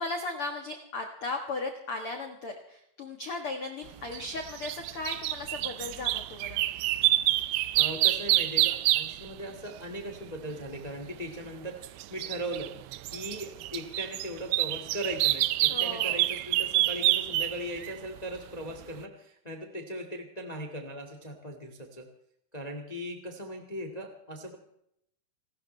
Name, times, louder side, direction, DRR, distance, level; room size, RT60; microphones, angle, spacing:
voice 1, 0.0-6.6 15.7-16.2, left 3 dB, 55° left, 4 dB, 1.6 m, -36 dB
sound 1, 4.1-9.3 11.6-18.2 18.7-18.8, right 16 dB, 90° right, 2.7 m, -27 dB
voice 2, 7.7-12.7 13.1-22.1 22.5-24.6, right 1 dB, 25° left, 4 dB, 0.9 m, -39 dB
28.0 x 13.0 x 3.3 m, 0.75 s
omnidirectional pair, 4.5 m